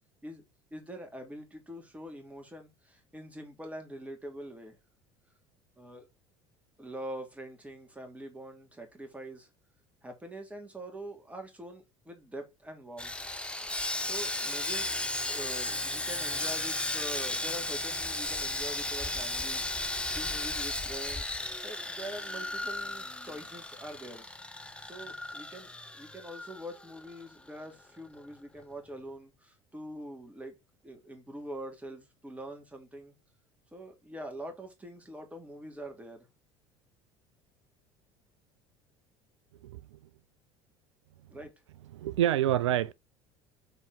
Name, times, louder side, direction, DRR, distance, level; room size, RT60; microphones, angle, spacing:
voice 1, 0.7-4.8 5.8-6.1 6.8-9.5 10.0-13.1 14.0-15.0 15.3-21.3 21.6-24.3 24.8-30.5 30.8-33.2 33.7-36.3 41.3-41.5, right 1 dB, 10° right, 2.4 m, -44 dB
Sawing, 13.0-27.2 27.5-27.7 28.1-28.3, left 2 dB, 5° left, 0.9 m, -35 dB
voice 2, 39.6-40.0 41.9-42.9, right 12 dB, 70° right, 0.4 m, -27 dB
5.9 x 4.6 x 3.8 m
figure-of-eight pair, 65°, 16 cm